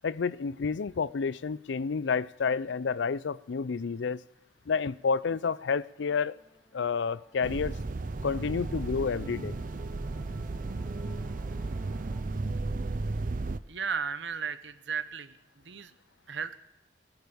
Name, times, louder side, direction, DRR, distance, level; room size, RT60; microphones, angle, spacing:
voice 1, 0.0-4.2 4.7-6.4 6.7-7.8 8.2-9.6, left 5 dB, 85° left, 0.5 m, -30 dB
Musical instrument, 6.2-12.2, right 2 dB, 5° right, 1.7 m, -58 dB
sound 1, 7.4-13.6, right 3 dB, 45° right, 0.5 m, -34 dB
voice 2, 13.7-15.4 15.6-15.9 16.3-16.6, right 6 dB, 85° right, 0.9 m, -34 dB
19.0 x 8.2 x 7.0 m
head